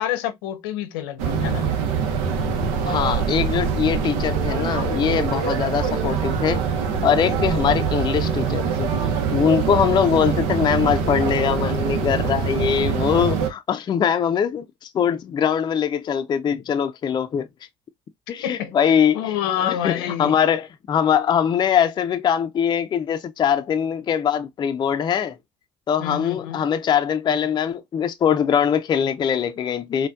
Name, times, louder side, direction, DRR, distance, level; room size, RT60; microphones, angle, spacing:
voice 1, 0.0-1.7 5.5-5.6 10.0-10.1 18.4-18.7 19.1-20.4 26.0-26.6, left 11 dB, 80° left, 0.7 m, -27 dB
sound 1, 1.2-13.5, right 6 dB, 75° right, 0.7 m, -24 dB
voice 2, 2.8-6.6 7.0-9.0 9.3-17.5 18.3-19.3 19.6-25.4 25.9-30.1, left 8 dB, 40° left, 0.4 m, -22 dB
4.2 x 2.2 x 2.3 m
hypercardioid pair, 70°, 12 cm